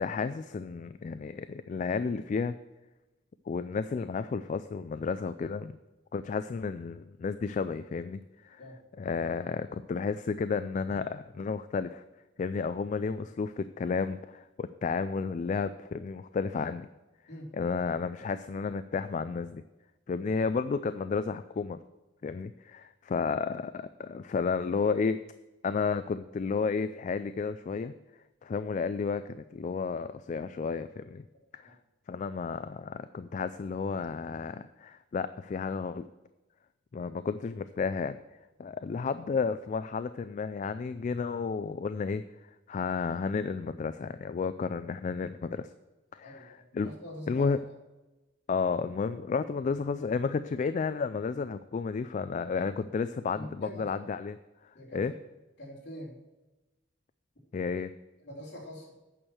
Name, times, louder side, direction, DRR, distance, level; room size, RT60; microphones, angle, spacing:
voice 1, 0.0-2.5 3.5-5.8 6.1-8.6 9.0-12.0 12.4-16.9 17.5-19.6 20.1-21.8 22.2-25.2 25.6-27.9 28.4-31.2 31.5-31.8 32.1-36.1 36.9-38.2 38.6-42.2 42.7-45.7 46.1-46.9 47.3-47.6 48.5-54.4 54.9-55.1 57.5-57.9, left 5 dB, 40° left, 12 dB, 0.3 m, -32 dB
voice 2, 46.8-47.5 53.3-53.9 54.7-55.1 55.6-56.2 58.2-58.9, left 1 dB, 65° left, -4 dB, 3.4 m, -43 dB
9.0 x 6.4 x 6.2 m, 1.1 s
head